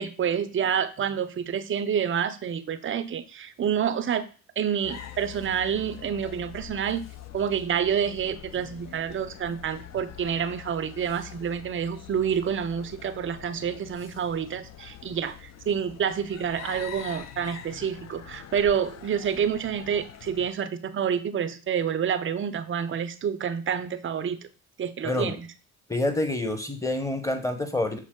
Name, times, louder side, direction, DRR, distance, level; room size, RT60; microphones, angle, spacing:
voice 1, 0.0-4.3 4.6-7.0 7.3-24.5 24.8-25.5, right 8 dB, 30° right, 11 dB, 0.5 m, -28 dB
sound 1, 4.8-20.5, left 10 dB, 40° left, 0.5 m, -44 dB
voice 2, 25.0-25.4 25.9-28.0, left 2 dB, 10° left, 6 dB, 0.9 m, -27 dB
6.1 x 2.0 x 3.7 m, 0.37 s
hypercardioid pair, 50°, 41 cm